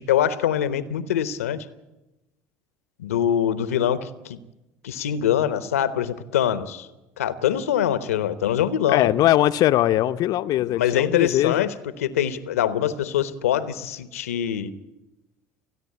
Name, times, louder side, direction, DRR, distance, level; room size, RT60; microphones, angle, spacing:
voice 1, 0.0-1.7 3.0-4.4 4.8-6.9 7.2-9.1 10.7-14.7, left 10 dB, 85° left, 1.0 m, -24 dB
voice 2, 8.9-11.7, left 14 dB, 55° left, 0.8 m, -21 dB
28.5 x 9.7 x 9.6 m
hypercardioid pair, 70°, 8 cm